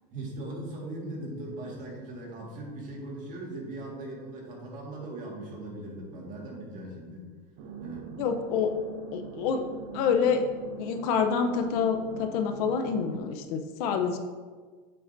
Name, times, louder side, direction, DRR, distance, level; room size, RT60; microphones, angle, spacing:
voice 1, 0.1-7.3 7.8-8.1, right 1 dB, 40° right, -2 dB, 1.8 m, -39 dB
sound 1, 7.6-13.2, right 5 dB, 55° right, 0.7 m, -42 dB
voice 2, 8.2-8.7 9.1-9.7 9.9-10.4 10.8-14.2, left 6 dB, 65° left, 6 dB, 0.7 m, -27 dB
7.6 x 5.7 x 2.6 m, 1.5 s
supercardioid pair, 140°, 21 cm